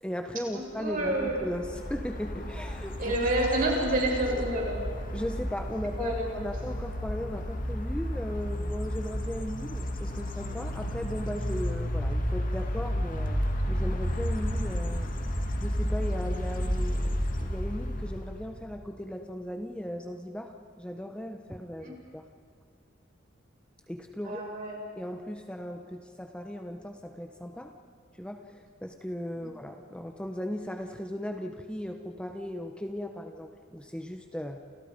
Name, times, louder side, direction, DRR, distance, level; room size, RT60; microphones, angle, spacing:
voice 1, 0.0-3.0 5.1-13.4 13.7-15.1 15.6-22.2 23.9-24.4 25.0-27.7 28.2-34.6, equal, 5° left, 4 dB, 1.0 m, -37 dB
voice 2, 0.8-1.4 3.0-4.8 6.0-6.2 21.8-21.9 24.2-24.8 29.4-29.5, right 1 dB, 45° right, -1 dB, 7.2 m, -28 dB
sound 1, 0.9-18.5, equal, 45° left, 2.5 m, -32 dB
30.0 x 29.5 x 5.3 m, 2.2 s
head